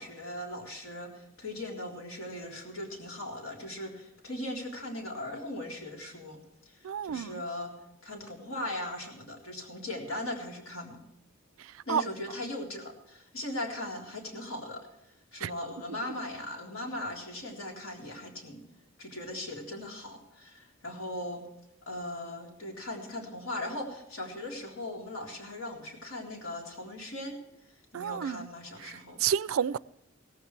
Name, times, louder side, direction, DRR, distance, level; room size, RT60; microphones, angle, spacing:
voice 1, 0.0-6.4 7.0-7.7 8.0-11.0 11.9-14.8 15.3-18.6 19.0-21.4 21.9-27.4 27.9-29.2, left 1 dB, 85° left, 3.7 m, -39 dB
voice 2, 6.8-7.4 11.9-12.0 15.4-15.5 27.9-28.5 29.2-29.8, right 8 dB, 75° right, 0.4 m, -29 dB
17.0 x 15.0 x 3.3 m
head